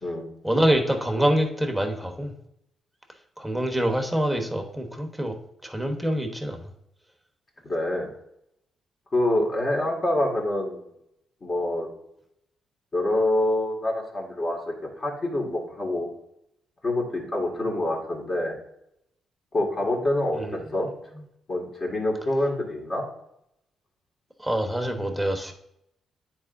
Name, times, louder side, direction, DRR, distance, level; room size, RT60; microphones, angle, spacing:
voice 1, 0.4-2.3 3.4-5.3 5.6-6.7 20.3-20.6 24.4-25.5, equal, ahead, 4 dB, 1.2 m, -25 dB
voice 2, 7.6-8.1 9.1-10.9 11.4-11.9 12.9-16.1 16.8-18.5 19.5-20.9 21.5-23.0, left 1 dB, 35° left, -1 dB, 2.2 m, -26 dB
9.5 x 4.6 x 2.6 m, 0.79 s
cardioid pair, 100°, 0 cm